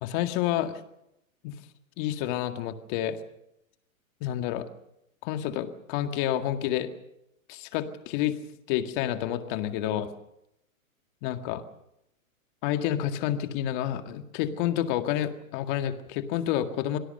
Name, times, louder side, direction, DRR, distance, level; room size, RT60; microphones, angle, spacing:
voice 1, 0.0-0.8 1.4-1.6 2.0-3.2 4.2-4.7 5.2-6.9 7.5-8.4 8.7-10.1 11.2-11.6 12.6-17.0, left 11 dB, 35° left, 8 dB, 1.9 m, -29 dB
25.0 x 17.5 x 6.7 m, 0.82 s
hypercardioid pair, 140°, 42 cm